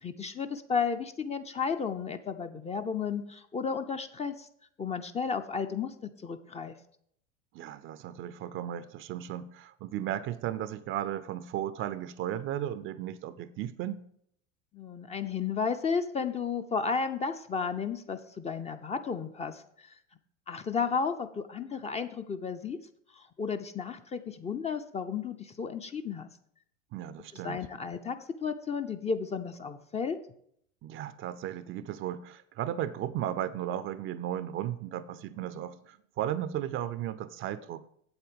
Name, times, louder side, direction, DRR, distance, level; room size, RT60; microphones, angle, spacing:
voice 1, 0.0-4.5 4.8-6.7 14.7-19.9 20.5-22.8 23.2-26.3 27.4-30.2, left 5 dB, 15° left, 0.5 m, -33 dB
voice 2, 7.5-14.0 26.9-27.6 30.8-37.8, right 11 dB, 35° right, 0.5 m, -35 dB
8.4 x 7.9 x 5.1 m
hypercardioid pair, 85°, 39 cm